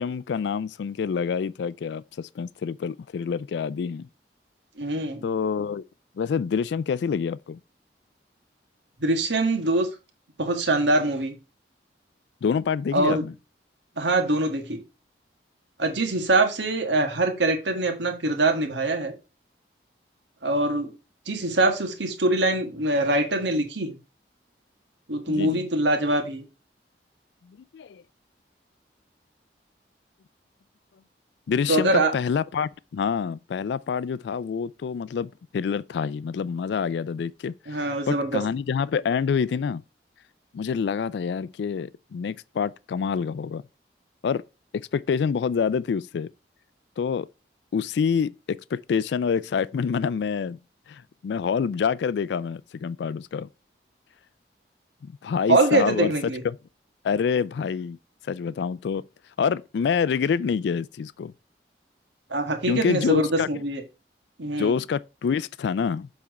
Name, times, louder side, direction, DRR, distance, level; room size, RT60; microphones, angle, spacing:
voice 1, 0.0-4.1 5.2-5.8 6.2-7.6 12.4-13.3 25.3-25.7 27.5-28.0 31.5-39.8 40.5-43.6 44.2-44.4 44.7-46.3 47.0-47.3 47.7-50.6 50.9-53.5 55.0-56.6 57.0-58.0 58.3-59.0 59.4-61.3 62.7-63.5 64.6-66.1, left 6 dB, 75° left, 0.3 m, -27 dB
voice 2, 4.8-5.2 9.0-9.9 10.4-11.3 12.9-13.2 14.0-14.8 15.8-19.1 20.4-20.9 21.3-24.0 25.1-26.4 31.7-32.1 37.7-38.4 55.5-56.4 62.3-63.8 64.4-64.8, right 2 dB, 85° right, 1.6 m, -23 dB
7.1 x 4.3 x 4.7 m
head